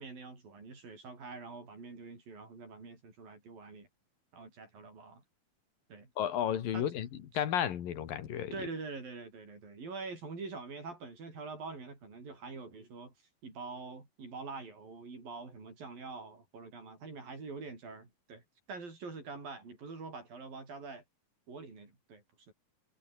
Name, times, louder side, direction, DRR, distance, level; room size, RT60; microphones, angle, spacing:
voice 1, 0.0-3.9 4.3-5.2 5.9-6.1 6.7-6.9 8.5-13.1 13.4-18.4 18.7-21.0 21.5-22.5, right 4 dB, 90° right, 9.2 m, -45 dB
voice 2, 6.2-7.1 7.3-8.5, left 10 dB, 85° left, 3.8 m, -32 dB
omnidirectional pair, 3.9 m